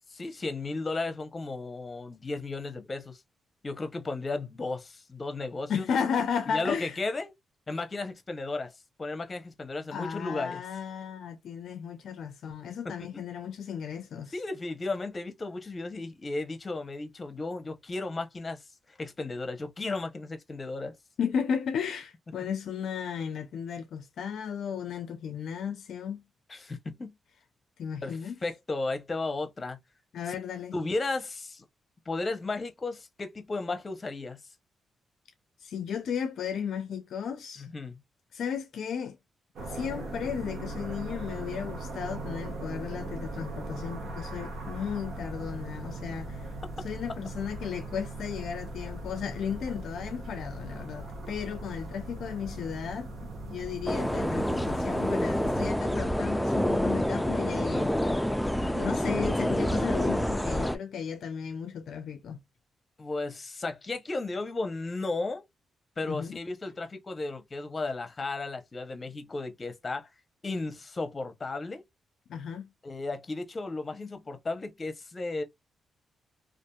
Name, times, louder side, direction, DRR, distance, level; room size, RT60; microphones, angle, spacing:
voice 1, 0.2-3.2 3.6-5.9 6.5-7.3 7.7-8.7 9.0-10.6 14.3-18.6 19.0-20.9 26.5-27.1 28.0-29.8 30.7-31.6 32.1-34.4 37.6-38.0 63.0-65.4 66.0-70.1 70.4-71.8 72.8-75.4, left 3 dB, 35° left, 0.7 m, -34 dB
voice 2, 5.7-7.0 9.9-14.3 21.2-26.2 27.8-28.3 30.1-30.7 35.6-37.7 38.3-39.2 39.7-46.5 46.8-53.1 53.5-57.9 58.7-62.4 66.0-66.4 72.3-72.7, left 7 dB, 75° left, 0.4 m, -34 dB
sound 1, 39.6-55.7, right 2 dB, 75° right, 1.0 m, -39 dB
sound 2, 53.9-60.8, equal, 5° left, 0.4 m, -27 dB
2.6 x 2.4 x 2.3 m
cardioid pair, 65°, 0 cm